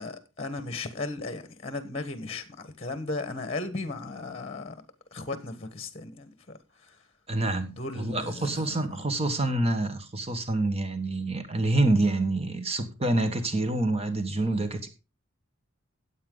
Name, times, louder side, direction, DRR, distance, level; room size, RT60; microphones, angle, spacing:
voice 1, 0.0-4.8 5.1-7.0 7.8-8.9, left 3 dB, 30° left, 1.4 m, -36 dB
voice 2, 7.3-14.9, right 2 dB, 30° right, 1.4 m, -27 dB
14.5 x 8.5 x 3.9 m
head